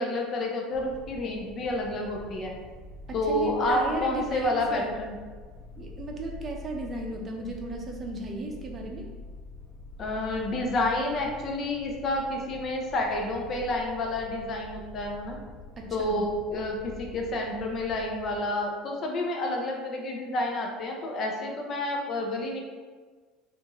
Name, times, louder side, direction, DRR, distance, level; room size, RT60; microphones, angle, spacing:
voice 1, 0.0-2.6 3.1-5.2 10.0-15.4 15.9-22.6, left 1 dB, 45° left, 1 dB, 0.6 m, -29 dB
sound 1, 0.7-18.4, left 2 dB, 80° left, 0.9 m, -45 dB
voice 2, 3.1-4.9 5.8-9.1 15.8-16.2, right 2 dB, 35° right, 0 dB, 0.6 m, -35 dB
3.6 x 2.6 x 2.9 m, 1.5 s
supercardioid pair, 105°, 0 cm